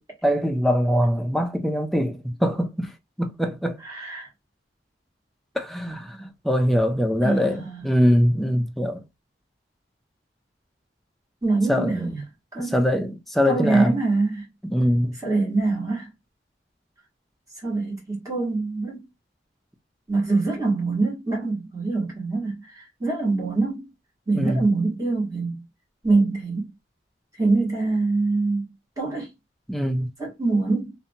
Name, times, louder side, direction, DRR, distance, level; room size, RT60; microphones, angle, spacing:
voice 1, 0.2-2.9 3.2-3.8 5.6-9.0 11.7-12.1 12.7-13.9 14.6-15.2 24.3-24.6 29.7-30.1, equal, ahead, 0.3 m, -23 dB
voice 2, 3.8-4.3 7.2-7.9 11.4-12.2 12.5-12.8 13.4-14.5 15.2-16.1 17.6-19.0 20.1-23.9 24.3-25.6 26.0-26.7 27.4-28.6 29.0-29.3 30.2-30.9, right 3 dB, 20° right, 1.3 m, -24 dB
2.7 x 2.1 x 2.7 m
head